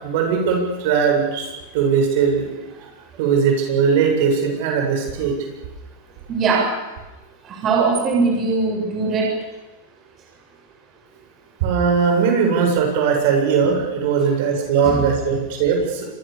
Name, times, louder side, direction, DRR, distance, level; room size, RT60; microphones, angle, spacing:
voice 1, 0.0-2.4 3.2-5.3 11.6-16.0, right 6 dB, 60° right, 2 dB, 7.6 m, -19 dB
voice 2, 6.3-6.6 7.6-9.3 14.8-15.0, right 4 dB, 30° right, 0 dB, 7.1 m, -20 dB
26.0 x 23.5 x 7.0 m, 1.1 s
supercardioid pair, 140°, 0 cm